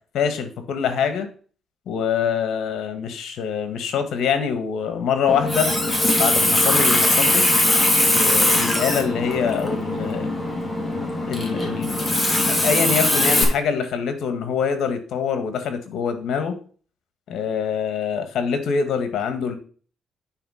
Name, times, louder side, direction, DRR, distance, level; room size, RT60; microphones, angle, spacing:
voice 1, 0.1-1.3 1.9-5.7 6.2-7.4 8.1-10.3 11.2-12.1 12.5-16.5 17.3-19.5, left 6 dB, 75° left, 9 dB, 1.6 m, -24 dB
Water tap faucet, 5.3-13.4, left 1 dB, 20° left, 2.6 m, -20 dB
9.2 x 4.3 x 5.7 m, 0.42 s
cardioid pair, 90°, 0 cm